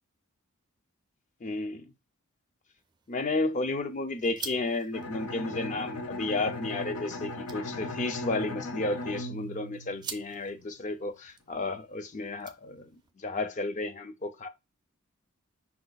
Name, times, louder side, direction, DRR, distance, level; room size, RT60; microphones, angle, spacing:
voice 1, 1.4-1.9 3.1-14.5, left 2 dB, 35° left, 0.5 m, -32 dB
sound 1, 2.8-13.1, right 6 dB, 20° right, 0.4 m, -49 dB
Bowed string instrument, 4.9-10.6, left 2 dB, 90° left, 0.7 m, -38 dB
5.6 x 2.3 x 3.9 m
head